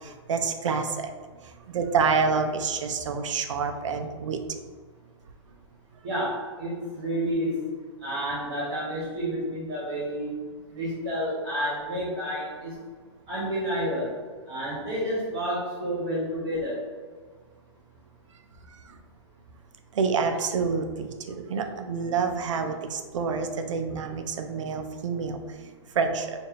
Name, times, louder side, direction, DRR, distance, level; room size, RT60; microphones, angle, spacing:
voice 1, 0.3-1.1 1.7-4.4 20.0-25.4 26.0-26.3, right 5 dB, 75° right, 6 dB, 0.6 m, -27 dB
voice 2, 6.0-7.6 8.0-10.4 10.7-12.7 13.3-14.2 14.5-16.8, equal, 40° right, -6 dB, 1.3 m, -30 dB
4.6 x 2.6 x 2.9 m, 1.6 s
hypercardioid pair, 170°, 16 cm